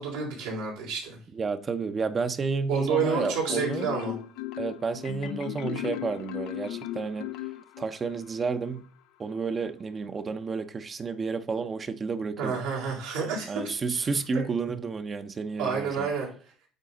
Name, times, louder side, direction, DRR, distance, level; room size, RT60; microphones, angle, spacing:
voice 1, 0.0-1.2 2.7-4.1 12.4-13.5 15.6-16.3, right 5 dB, 85° right, 3.5 m, -29 dB
voice 2, 1.3-3.9 4.6-7.3 7.8-8.8 9.2-12.5 13.5-16.1, right 4 dB, 30° right, 0.8 m, -31 dB
Marimba xylophone, 2.9-8.1, left 14 dB, 75° left, 0.5 m, -36 dB
9.1 x 4.1 x 3.8 m
supercardioid pair, 90°, 0 cm